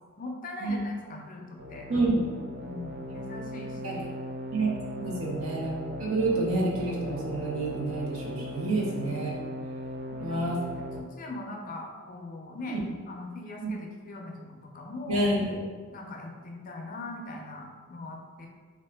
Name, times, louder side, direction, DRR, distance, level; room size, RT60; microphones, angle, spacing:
voice 1, 0.2-2.2 2.6-4.1 5.0-5.2 10.1-10.4 11.0-12.8 13.1-15.3 15.9-18.5, left 2 dB, 40° left, 1 dB, 0.4 m, -41 dB
sound 1, 1.6-11.0, equal, 50° right, 0.4 m, -38 dB
voice 2, 1.9-2.3 3.8-4.0 4.5-5.7 6.0-9.3 10.2-10.6 12.7-12.8 13.6-13.7 15.1-15.5, right 2 dB, 75° right, -3 dB, 0.8 m, -28 dB
3.5 x 2.4 x 3.3 m, 1.5 s
head